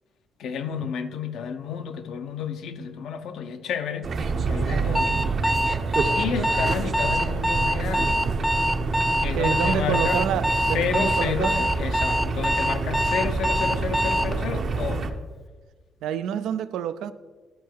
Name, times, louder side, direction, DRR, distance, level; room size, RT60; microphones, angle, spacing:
voice 1, 0.4-4.1 4.4-5.2 6.1-8.2 9.2-10.2 10.7-15.1, left 7 dB, 75° left, 8 dB, 0.7 m, -31 dB
sound 1, 4.0-15.1, right 4 dB, 55° right, 0.7 m, -27 dB
voice 2, 4.6-5.1 9.4-11.6 16.0-17.1, right 9 dB, 85° right, 13 dB, 0.4 m, -28 dB
Alarm, 4.9-14.3, equal, 5° left, 0.3 m, -25 dB
12.0 x 4.6 x 4.6 m, 1.4 s
cardioid pair, 90°, 0 cm